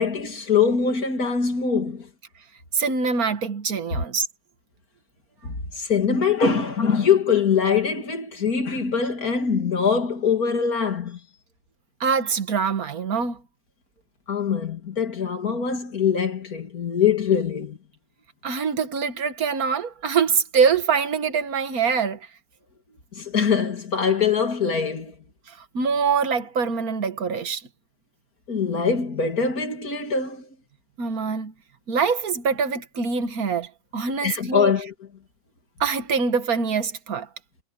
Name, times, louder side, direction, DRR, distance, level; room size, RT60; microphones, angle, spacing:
voice 1, 0.0-2.1 3.9-4.0 5.4-11.2 14.3-17.8 23.1-25.1 28.5-30.5 34.2-34.9, left 6 dB, 65° left, 3.0 m, -23 dB
voice 2, 2.7-4.3 12.0-13.4 18.4-22.3 25.6-27.6 31.0-31.5 31.9-34.7 35.8-37.3, right 5 dB, 65° right, 2.0 m, -24 dB
omnidirectional pair, 1.6 m